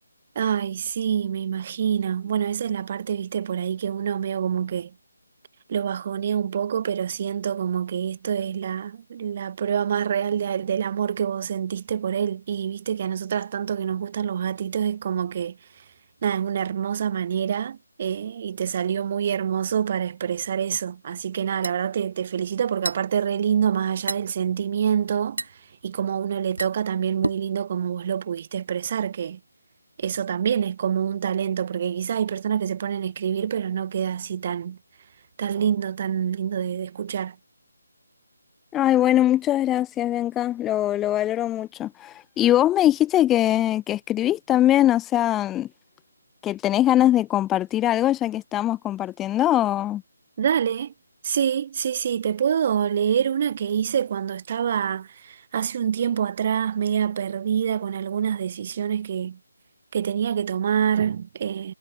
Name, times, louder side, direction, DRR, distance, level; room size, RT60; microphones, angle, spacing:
voice 1, 0.4-4.9 5.7-15.6 16.2-25.5 25.8-29.4 30.0-34.8 35.4-37.4 50.4-50.9 51.2-59.4 59.9-61.7, right 8 dB, 35° right, 1.9 m, -26 dB
sound 1, 21.2-27.6, right 2 dB, 85° right, 1.1 m, -34 dB
voice 2, 38.7-45.7 46.4-50.0, left 13 dB, 10° left, 0.9 m, -22 dB
figure-of-eight pair, 155°, 0 cm